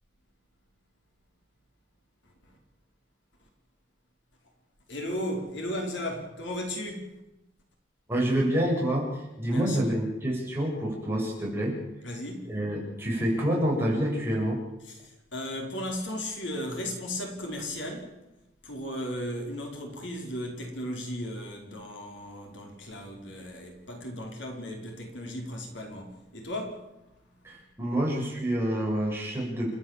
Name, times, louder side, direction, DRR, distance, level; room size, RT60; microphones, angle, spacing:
voice 1, 2.2-2.6 4.9-7.2 9.5-9.8 12.0-12.5 14.8-18.2 18.6-26.9, left 1 dB, 70° left, 5.0 m, -36 dB
voice 2, 8.1-11.8 12.5-14.6 27.4-29.7, right 1 dB, 15° right, 7.9 m, -27 dB
30.0 x 13.0 x 7.6 m
head